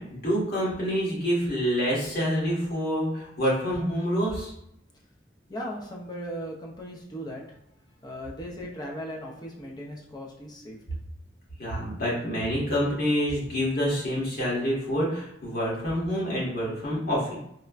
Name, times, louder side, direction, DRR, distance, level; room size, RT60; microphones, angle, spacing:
voice 1, 0.0-4.5 11.6-17.4, equal, 55° left, -6 dB, 1.3 m, -27 dB
voice 2, 5.5-7.6 8.0-10.8, equal, 20° left, -2 dB, 0.5 m, -37 dB
4.3 x 2.1 x 2.4 m, 0.76 s
head